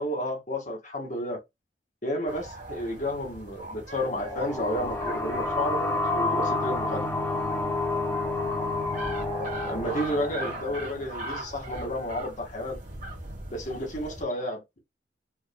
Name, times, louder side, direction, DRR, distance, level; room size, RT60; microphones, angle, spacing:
voice 1, 0.0-1.4 2.0-7.0 9.4-12.8 13.5-14.8, left 1 dB, 40° left, 1.3 m, -31 dB
sound 1, 2.3-14.2, right 1 dB, 45° right, 1.3 m, -40 dB
sound 2, 4.0-11.4, left 2 dB, 10° left, 1.1 m, -30 dB
4.6 x 2.5 x 2.2 m
head